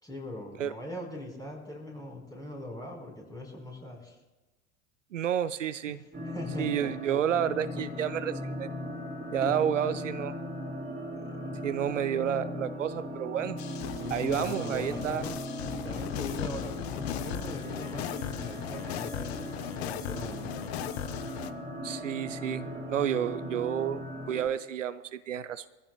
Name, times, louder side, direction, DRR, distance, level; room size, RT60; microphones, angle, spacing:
voice 1, 0.0-4.2 5.9-6.0 6.2-7.0 7.7-7.8 9.4-9.6 11.1-11.6 14.0-15.4 15.8-19.4 19.7-20.5, left 1 dB, 10° left, 0 dB, 4.4 m, -40 dB
voice 2, 5.1-6.0 6.6-8.7 9.3-10.3 11.6-13.6 14.1-15.2 21.8-25.7, right 9 dB, 75° right, 15 dB, 0.6 m, -30 dB
sound 1, 6.1-24.5, left 1 dB, 20° right, 3.6 m, -38 dB
sound 2, 13.6-21.5, left 11 dB, 55° left, 0.8 m, -37 dB
23.0 x 14.5 x 2.2 m, 1.1 s
figure-of-eight pair, 75°, 38 cm